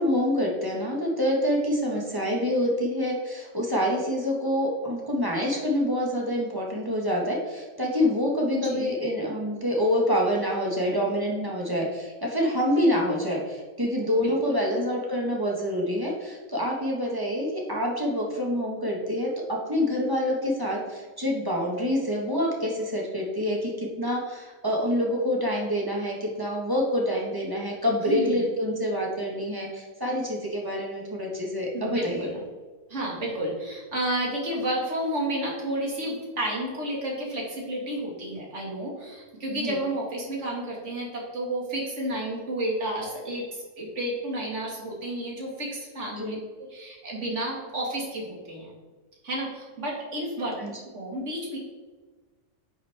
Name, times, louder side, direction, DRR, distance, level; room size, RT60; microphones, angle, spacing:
voice 1, 0.0-32.3 39.5-39.8 46.2-46.4 50.6-50.7, equal, 15° right, -2 dB, 1.7 m, -26 dB
voice 2, 8.5-8.9 14.2-14.3 28.0-28.4 31.7-32.4 32.9-46.4 46.7-48.8 49.2-50.6 50.9-51.6, right 1 dB, 45° right, -3 dB, 2.6 m, -31 dB
10.5 x 6.3 x 3.7 m, 1.3 s
omnidirectional pair, 1.7 m